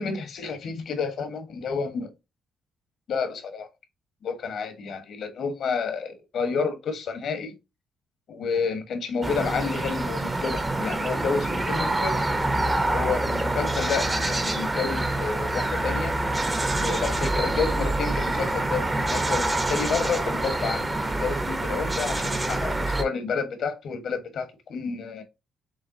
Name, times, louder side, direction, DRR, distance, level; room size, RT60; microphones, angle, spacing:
voice 1, 0.0-2.1 3.1-3.7 4.2-7.5 8.3-12.2 12.9-16.1 16.8-25.2, left 5 dB, 65° left, 1.3 m, -30 dB
sound 1, 9.2-23.0, right 2 dB, 20° right, 0.9 m, -26 dB
6.3 x 2.3 x 2.7 m
cardioid pair, 90°, 0 cm